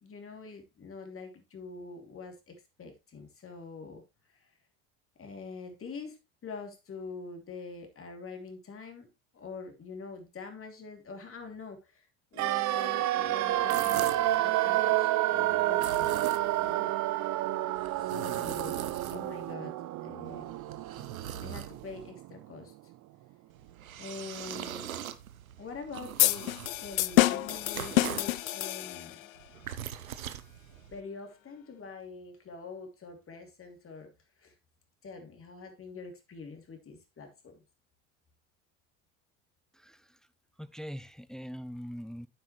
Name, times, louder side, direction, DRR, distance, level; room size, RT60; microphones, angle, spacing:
voice 1, 0.0-4.0 4.3-4.5 5.2-16.1 16.6-17.0 17.9-18.8 19.1-20.6 21.4-22.7 24.0-24.9 25.6-29.3 30.9-34.1 34.4-34.5 35.0-37.6, left 4 dB, 35° left, 2.9 m, -45 dB
sound 1, 12.4-22.3 22.6-22.7, right 15 dB, 45° right, 0.7 m, -29 dB
sound 2, 13.5-14.4 15.7-16.7 17.8-19.5 20.3-22.1 23.5-28.4 29.4-31.0, right 10 dB, 85° right, 0.8 m, -42 dB
sound 3, 26.2-29.3, left 16 dB, 85° left, 0.5 m, -27 dB
voice 2, 40.6-42.3, equal, ahead, 0.5 m, -41 dB
9.5 x 7.9 x 3.2 m
hypercardioid pair, 70°, 40 cm